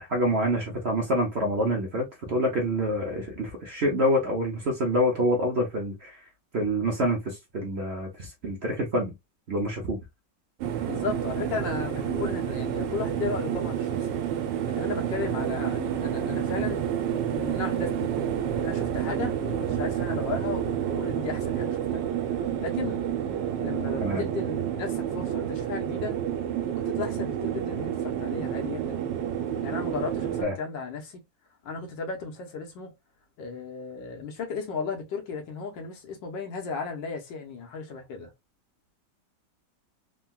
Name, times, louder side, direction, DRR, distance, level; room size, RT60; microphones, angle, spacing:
voice 1, 0.0-6.2 6.5-9.1 9.5-10.0 24.0-24.2 30.4-30.5, equal, 65° right, 0.6 m, -27 dB
sound 1, 10.6-30.4, right 9 dB, 80° right, 1.3 m, -29 dB
voice 2, 10.9-14.2 14.6-16.9 17.1-18.1 18.5-22.0 22.6-23.0 23.6-26.2 26.6-29.0 29.6-31.2 31.6-32.9 33.4-38.3, left 4 dB, 85° left, 1.6 m, -35 dB
3.6 x 2.2 x 2.2 m
omnidirectional pair, 2.0 m